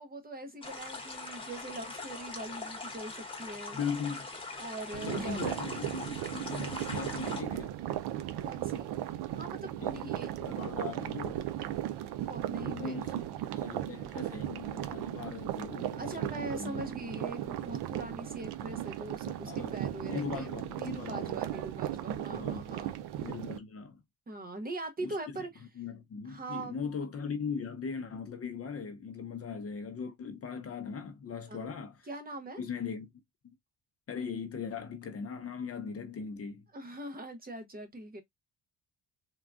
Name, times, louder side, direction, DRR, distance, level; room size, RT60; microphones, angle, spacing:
voice 1, 0.0-3.8 4.6-5.4 8.4-9.0 9.3-10.3 12.2-13.0 15.9-20.5 20.8-23.3 24.3-25.7 26.3-26.8 31.5-31.7 32.1-32.6 36.7-38.2, right 2 dB, 25° right, 0.7 m, -42 dB
sound 1, 0.6-7.4, left 3 dB, 15° left, 0.9 m, -42 dB
voice 2, 3.7-4.3 5.1-7.8 9.8-11.4 12.6-16.9 19.4-19.8 20.1-21.3 22.3-22.7 23.2-24.0 25.0-25.2 25.8-32.0 32.6-33.1 34.1-36.6, left 6 dB, 40° left, 0.6 m, -39 dB
sound 2, 4.9-23.6, right 12 dB, 80° right, 0.5 m, -36 dB
3.6 x 2.3 x 2.3 m
cardioid pair, 110°, 38 cm